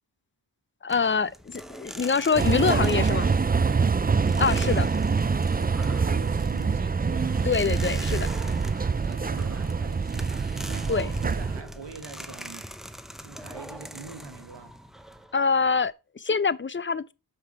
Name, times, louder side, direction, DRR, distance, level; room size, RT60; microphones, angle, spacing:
voice 1, 0.8-3.3 4.4-4.9 7.4-8.3 10.9-11.1 15.3-17.1, left 5 dB, 30° left, 0.5 m, -25 dB
sound 1, 0.9-15.9, equal, ahead, 0.8 m, -42 dB
sound 2, 2.4-11.6, right 5 dB, 25° right, 0.4 m, -25 dB
voice 2, 5.5-7.3 8.9-10.3 10.7-12.7 13.2-14.7, right 5 dB, 80° right, 1.4 m, -43 dB
6.5 x 5.7 x 4.7 m
wide cardioid pair, 55°, 42 cm